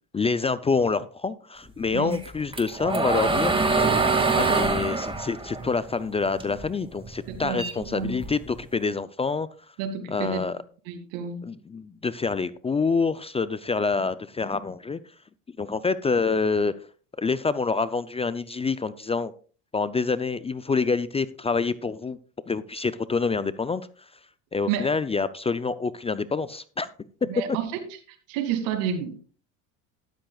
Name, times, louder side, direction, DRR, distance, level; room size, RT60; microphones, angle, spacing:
voice 1, 0.1-3.6 4.4-9.5 10.1-10.6 11.4-15.0 15.6-16.7 17.2-19.3 19.7-22.2 22.5-23.9 24.5-26.9, left 4 dB, 15° left, 0.4 m, -26 dB
sound 1, 2.1-6.6 7.0-8.6, right 3 dB, 15° right, 2.0 m, -24 dB
voice 2, 7.3-8.2 9.8-10.4 10.9-11.4 24.7-24.9 27.3-29.2, right 8 dB, 80° right, 2.6 m, -30 dB
13.0 x 12.0 x 2.4 m
supercardioid pair, 100°, 39 cm